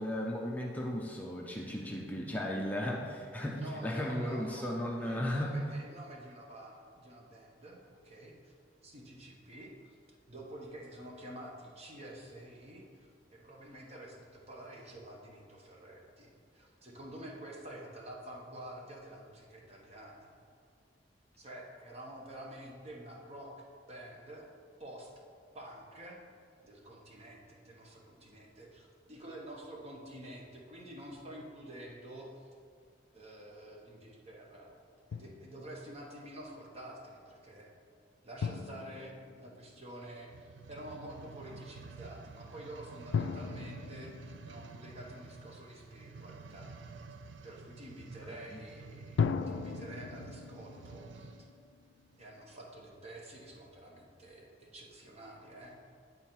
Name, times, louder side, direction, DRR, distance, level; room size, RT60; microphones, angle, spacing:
voice 1, 0.0-5.5, left 1 dB, 10° left, -2 dB, 0.5 m, -35 dB
voice 2, 3.5-8.5 8.8-20.4 21.4-24.5 24.8-25.1 25.5-26.2 26.6-32.5 33.1-34.7 35.1-37.7 38.2-46.7 47.4-51.4 52.2-55.8, right 1 dB, 35° right, -1 dB, 1.1 m, -49 dB
Drum, 35.1-35.9 38.4-40.2 43.1-45.6 49.2-52.3, left 6 dB, 85° left, 0.3 m, -38 dB
sound 1, 40.3-51.5 52.1-52.2, right 4 dB, 75° right, 0.4 m, -50 dB
9.3 x 3.9 x 4.4 m, 2.2 s
head